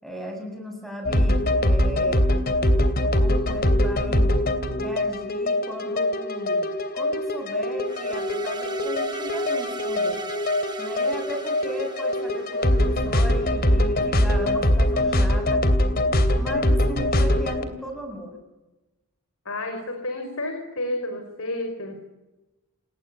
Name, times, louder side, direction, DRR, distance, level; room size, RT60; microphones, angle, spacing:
voice 1, 0.0-2.3 3.2-4.3 4.8-6.7 6.9-10.2 10.8-15.7 16.3-18.4, equal, ahead, 5 dB, 8.0 m, -36 dB
sound 1, 1.0-17.6, left 1 dB, 45° left, 3.0 m, -22 dB
sound 2, 7.8-13.1, right 4 dB, 20° right, 2.0 m, -38 dB
voice 2, 19.5-22.0, left 1 dB, 65° left, 5 dB, 5.6 m, -30 dB
29.5 x 20.0 x 10.0 m, 1.0 s
head